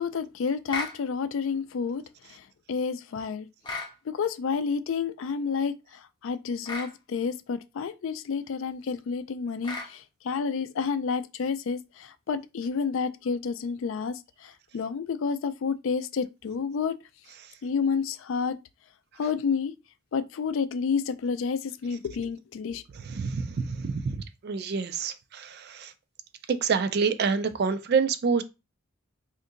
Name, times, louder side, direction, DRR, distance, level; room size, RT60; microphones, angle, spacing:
voice 1, 0.0-3.5 4.1-17.0 17.6-18.6 19.2-19.7 20.1-22.8, left 5 dB, 65° left, 0.3 m, -30 dB
sound 1, 0.7-1.0 3.6-3.9 6.6-6.9 9.6-9.9, left 3 dB, 20° left, 0.6 m, -34 dB
voice 2, 23.1-25.9 26.5-28.4, right 5 dB, 50° right, 0.3 m, -27 dB
2.7 x 2.5 x 3.8 m
head